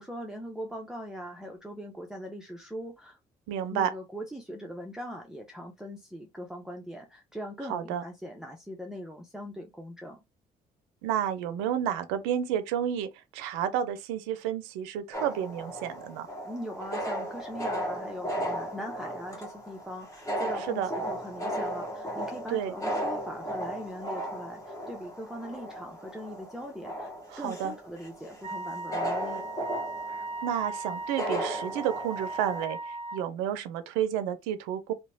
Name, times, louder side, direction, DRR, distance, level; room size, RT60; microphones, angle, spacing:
voice 1, 0.0-3.2 3.7-10.2 16.4-29.5, equal, 5° right, 0.6 m, -40 dB
voice 2, 3.5-3.9 7.7-8.0 11.0-16.3 20.7-20.9 22.5-22.7 27.3-27.7 30.4-34.9, right 9 dB, 85° right, 0.4 m, -31 dB
sound 1, 15.1-32.7, right 1 dB, 15° left, 1.3 m, -36 dB
Wind instrument woodwind instrument, 28.4-33.3, right 2 dB, 35° right, 0.9 m, -37 dB
2.8 x 2.1 x 2.6 m
hypercardioid pair, 55°, 20 cm